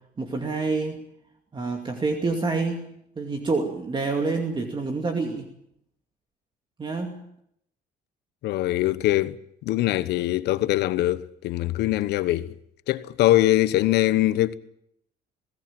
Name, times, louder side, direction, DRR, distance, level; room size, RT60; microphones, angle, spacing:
voice 1, 0.2-1.0 1.5-5.5 6.8-7.2, right 3 dB, 30° right, 2.4 m, -27 dB
voice 2, 8.4-9.4 9.6-12.5 12.9-14.5, left 15 dB, 80° left, 1.0 m, -22 dB
21.0 x 17.5 x 7.5 m
cardioid pair, 110°, 17 cm